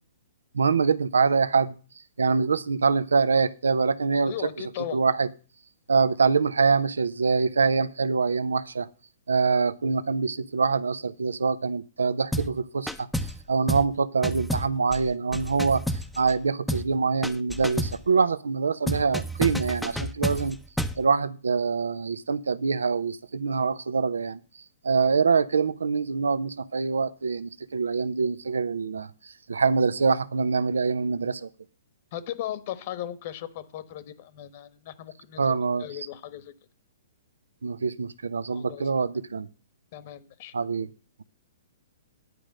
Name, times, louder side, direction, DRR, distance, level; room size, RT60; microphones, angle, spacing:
voice 1, 0.5-1.7 2.2-4.3 4.9-5.3 5.9-8.9 9.3-15.8 16.2-20.6 21.0-24.4 24.8-31.5 35.4-35.8 37.6-39.5 40.5-40.9, right 5 dB, 85° right, 17 dB, 0.7 m, -24 dB
voice 2, 4.2-5.0 32.1-36.5 38.5-38.9 39.9-40.5, left 12 dB, 50° left, 14 dB, 1.3 m, -37 dB
sound 1, 12.3-12.6 12.9-13.4 13.7-13.9 14.2-16.4 16.7-16.9 17.2-18.0 18.9-21.0, equal, ahead, 0.7 m, -30 dB
11.0 x 5.1 x 7.4 m, 0.36 s
hypercardioid pair, 125°, 0 cm